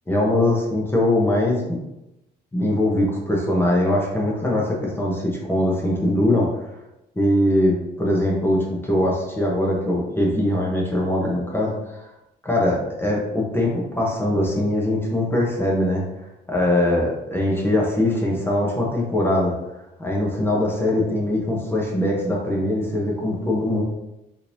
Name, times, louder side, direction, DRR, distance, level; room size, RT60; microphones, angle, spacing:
voice 1, 0.1-1.8 2.5-6.5 7.2-12.0 12.4-16.0 16.5-19.5 20.0-23.8, left 1 dB, 15° left, -3 dB, 0.9 m, -21 dB
3.6 x 3.0 x 2.6 m, 0.91 s
cardioid pair, 110°, 17 cm